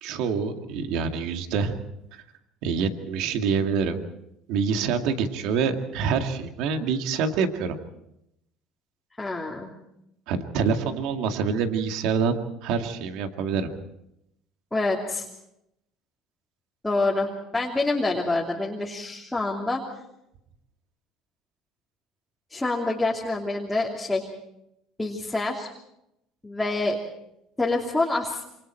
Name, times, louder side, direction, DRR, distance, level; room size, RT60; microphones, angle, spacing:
voice 1, 0.0-1.8 2.1-2.2 2.6-4.0 4.5-7.8 10.3-12.3 12.6-13.7, right 6 dB, 75° right, 6 dB, 2.2 m, -26 dB
voice 2, 9.2-9.7 14.7-15.3 16.8-19.8 22.5-24.3 25.0-25.7 26.4-27.0 27.6-28.4, left 2 dB, 10° left, -2 dB, 3.0 m, -26 dB
27.5 x 25.0 x 4.5 m, 0.81 s
supercardioid pair, 110°, 0 cm